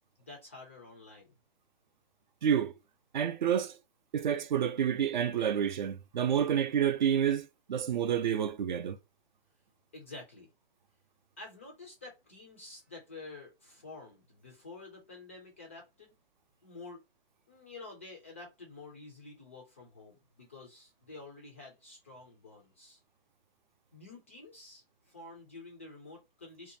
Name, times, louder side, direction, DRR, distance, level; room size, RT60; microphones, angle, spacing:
voice 1, 0.2-1.4 9.9-10.5 11.4-16.1 16.6-17.0 17.5-23.0 23.9-26.8, left 3 dB, 15° left, 0.3 m, -49 dB
voice 2, 2.4-2.8 3.1-3.7 4.1-9.0, right 8 dB, 55° right, 0.4 m, -29 dB
2.6 x 2.2 x 2.6 m
hypercardioid pair, 145°, 29 cm